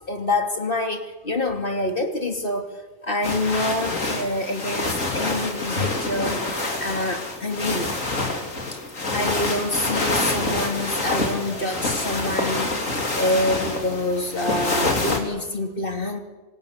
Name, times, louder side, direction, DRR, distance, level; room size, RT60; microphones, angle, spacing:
voice 1, 0.0-2.7 3.0-6.4 6.8-8.0 8.7-8.8 9.1-12.7 13.1-16.2, left 1 dB, 45° left, 5 dB, 3.0 m, -26 dB
sound 1, 3.2-15.2, left 2 dB, 80° left, 4.1 m, -26 dB
27.0 x 25.0 x 8.1 m, 1.2 s
omnidirectional pair, 1.3 m